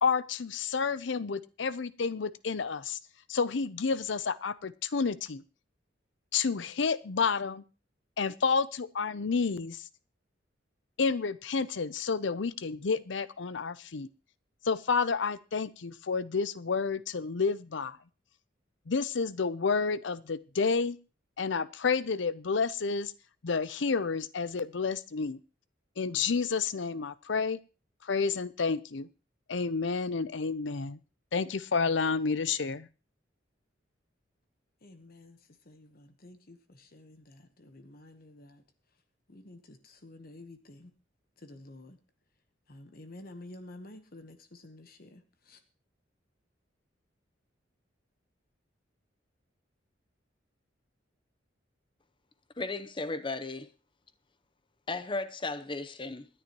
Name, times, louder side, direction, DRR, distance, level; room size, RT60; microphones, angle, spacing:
voice 1, 0.0-3.0 3.3-5.4 6.3-7.6 8.2-9.8 11.0-14.1 14.6-18.0 18.9-21.0 21.4-23.1 23.4-25.4 26.0-27.6 28.0-29.1 29.5-31.0 31.3-32.9, left 5 dB, 70° left, 0.6 m, -30 dB
voice 2, 34.8-38.6 39.3-40.9 41.4-42.0 42.7-45.6, left 1 dB, 50° left, 1.1 m, -51 dB
voice 3, 52.6-53.7 54.9-56.3, left 3 dB, 25° left, 0.8 m, -35 dB
25.0 x 10.0 x 3.0 m
head